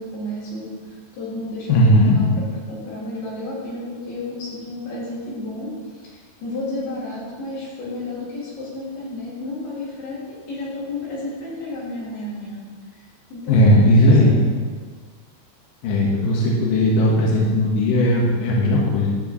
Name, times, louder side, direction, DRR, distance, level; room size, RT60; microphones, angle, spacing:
voice 1, 0.0-12.7 12.9-13.7 14.2-14.4, left 1 dB, 55° left, -6 dB, 3.9 m, -32 dB
voice 2, 1.7-2.2 13.5-14.4 15.8-19.1, left 1 dB, 75° left, -4 dB, 2.0 m, -16 dB
13.0 x 6.4 x 3.1 m, 1.5 s
omnidirectional pair, 5.8 m